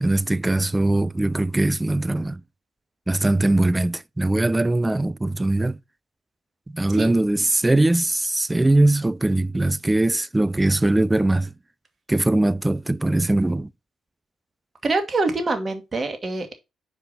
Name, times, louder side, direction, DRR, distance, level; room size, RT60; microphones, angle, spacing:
voice 1, 0.0-2.4 3.1-5.8 6.7-11.5 12.1-13.7, right 2 dB, 15° right, 0.4 m, -21 dB
voice 2, 14.8-16.5, right 3 dB, 35° right, 1.8 m, -25 dB
5.0 x 5.0 x 5.5 m
hypercardioid pair, 45°, 0 cm